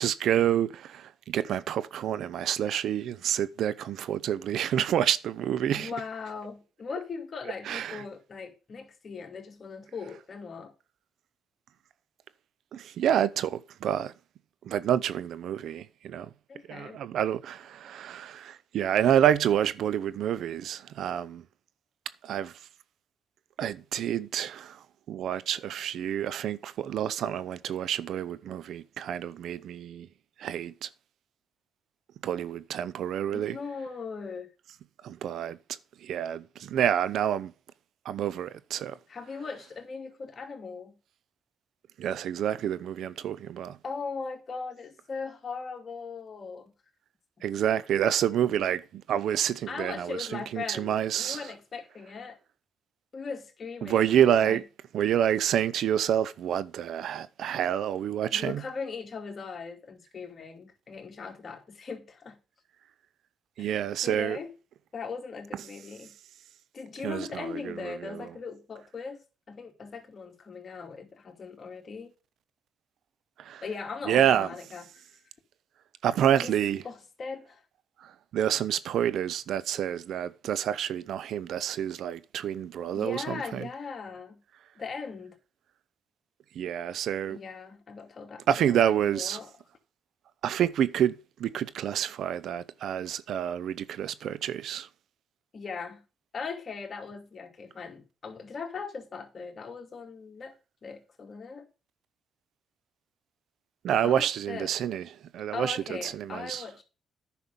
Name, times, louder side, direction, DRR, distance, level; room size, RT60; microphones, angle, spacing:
voice 1, 0.0-5.9 7.7-8.0 12.7-14.1 14.7-16.3 16.7-21.4 22.2-22.5 23.6-24.8 25.1-30.1 30.4-30.9 32.2-33.6 35.0-35.6 36.0-37.5 38.1-38.9 42.0-43.8 47.4-50.2 50.5-51.4 53.8-54.6 54.9-58.6 63.6-64.4 67.0-68.1 73.5-73.6 74.1-74.5 76.0-76.8 78.3-83.2 83.5-83.7 86.6-87.4 88.5-89.4 90.4-91.1 91.4-94.9 103.8-105.0 105.3-106.6, right 10 dB, 75° right, 0.6 m, -28 dB
voice 2, 5.7-10.7 16.5-17.0 33.3-34.5 39.1-41.0 43.8-46.7 49.7-52.4 53.1-54.6 58.3-62.4 63.6-63.7 64.0-64.5 64.9-66.2 66.7-69.2 69.5-72.1 73.6-75.1 76.4-76.5 76.8-77.6 82.9-84.4 84.8-85.4 87.3-89.5 95.5-96.1 96.3-100.5 100.8-101.7 104.0-104.7 105.5-106.8, left 5 dB, 45° left, 2.6 m, -39 dB
9.9 x 5.9 x 5.2 m
cardioid pair, 90°, 0 cm